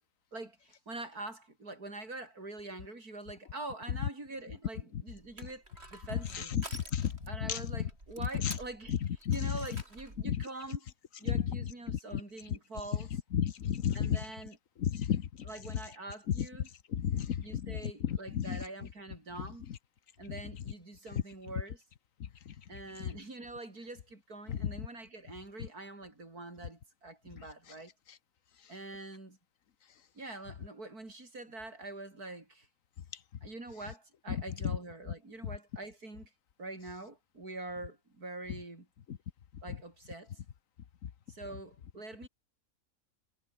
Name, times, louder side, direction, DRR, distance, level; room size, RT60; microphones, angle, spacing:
voice 1, 0.3-5.6 5.9-6.6 7.3-10.9 11.2-13.1 13.9-14.6 15.4-16.7 17.4-19.7 20.2-21.8 22.7-27.9 28.7-29.4 30.1-32.7 33.4-36.3 36.6-38.9 39.6-40.3 41.3-42.3, right 2 dB, 75° right, 6.3 m, -45 dB
Crushing, 5.1-10.3, right 1 dB, 45° right, 7.0 m, -50 dB
voice 2, 13.3-14.2 14.8-15.2 16.9-17.6 18.1-18.6 24.5-24.6, left 9 dB, 60° left, 1.4 m, -31 dB
omnidirectional pair, 1.6 m